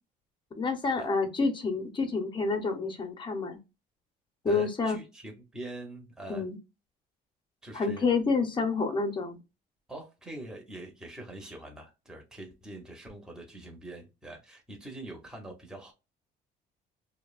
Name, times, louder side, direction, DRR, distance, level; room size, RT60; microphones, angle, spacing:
voice 1, 0.6-3.6 4.4-5.0 6.3-6.6 7.7-9.4, left 4 dB, 30° left, 0.7 m, -28 dB
voice 2, 4.5-6.4 7.6-8.1 9.9-15.9, right 2 dB, 5° right, 0.7 m, -44 dB
2.7 x 2.0 x 2.3 m
cardioid pair, 110°, 17 cm